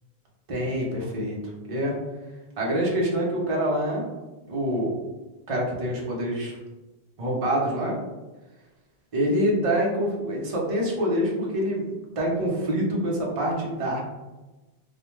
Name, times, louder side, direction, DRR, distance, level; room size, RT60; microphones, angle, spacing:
voice 1, 0.5-1.4 1.7-2.0 2.6-4.1 4.5-4.9 5.5-6.6 7.2-8.0 9.1-11.8 12.2-14.0, equal, 40° right, -2 dB, 0.6 m, -25 dB
2.4 x 2.1 x 3.0 m, 1.1 s
omnidirectional pair, 1.1 m